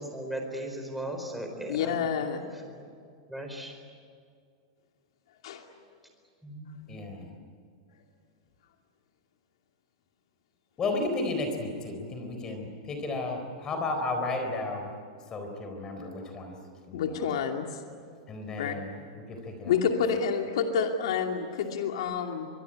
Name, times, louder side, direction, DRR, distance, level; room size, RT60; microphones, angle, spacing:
voice 1, 0.1-2.0 3.3-3.7 6.4-7.0, right 1 dB, ahead, 3 dB, 4.7 m, -37 dB
voice 2, 1.7-2.4 5.4-5.6 16.9-17.8 18.6-18.8 19.6-22.5, left 6 dB, 75° left, 3 dB, 2.6 m, -28 dB
voice 3, 6.9-7.3 10.8-14.9 15.3-16.5 16.9-17.3 18.3-19.7, left 2 dB, 20° left, 5 dB, 4.0 m, -33 dB
24.5 x 22.5 x 10.0 m, 2.2 s
supercardioid pair, 155°, 3 cm